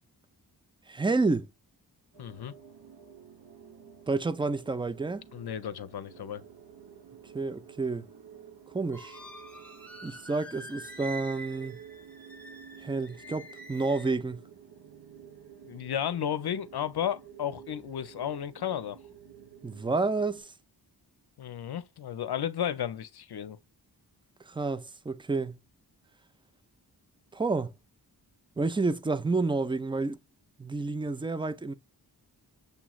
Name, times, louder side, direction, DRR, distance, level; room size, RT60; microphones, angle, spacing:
voice 1, 0.9-1.5 4.1-5.2 7.3-8.1 8.7-9.2 10.0-11.8 12.8-14.4 19.6-20.5 24.5-25.6 27.3-27.7 28.6-30.2 30.6-31.7, right 3 dB, 15° right, 0.4 m, -29 dB
sound 1, 2.1-20.4, right 8 dB, 65° right, 0.9 m, -51 dB
voice 2, 2.2-2.5 5.3-6.4 15.6-19.0 21.4-23.6, left 9 dB, 65° left, 0.6 m, -33 dB
sound 2, 8.9-14.2, right 1 dB, 5° left, 0.8 m, -46 dB
6.9 x 3.0 x 2.3 m
wide cardioid pair, 95°, 42 cm